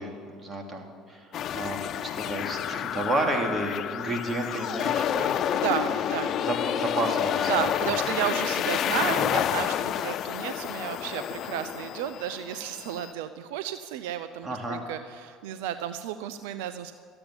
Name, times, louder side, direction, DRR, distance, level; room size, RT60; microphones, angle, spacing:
voice 1, 0.0-5.6 5.9-6.0 6.3-8.0 14.4-14.8, right 1 dB, 25° right, 2 dB, 2.9 m, -32 dB
sound 1, 1.3-13.1, left 10 dB, 55° left, 0.4 m, -29 dB
voice 2, 5.5-6.3 7.5-16.9, right 10 dB, 80° right, 11 dB, 0.5 m, -32 dB
13.5 x 8.8 x 8.8 m, 2.1 s
hypercardioid pair, 75°, 0 cm